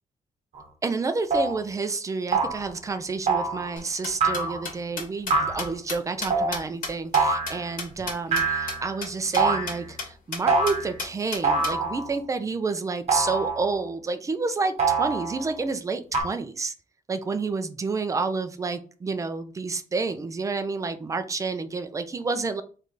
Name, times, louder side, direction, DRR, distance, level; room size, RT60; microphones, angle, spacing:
sound 1, 0.6-0.7 1.3-1.6 2.3-2.7 3.3-3.7 4.2-4.7 5.3-5.7 6.3-6.6 7.1-7.6 8.3-8.9 9.4-9.8 10.5-11.0 11.4-12.1 13.1-13.8 14.8-15.5 16.1-16.2, right 4 dB, 45° right, 1.2 m, -24 dB
voice 1, 0.8-16.7 17.1-22.6, right 4 dB, 20° right, 9 dB, 0.4 m, -29 dB
sound 2, 3.8-8.4 8.7-8.8 9.0-9.1 9.3-9.4 9.7-10.1 10.3-10.4 10.7-11.7, left 4 dB, 70° left, 1.8 m, -33 dB
3.4 x 3.2 x 3.8 m, 0.39 s
wide cardioid pair, 165°, 14 cm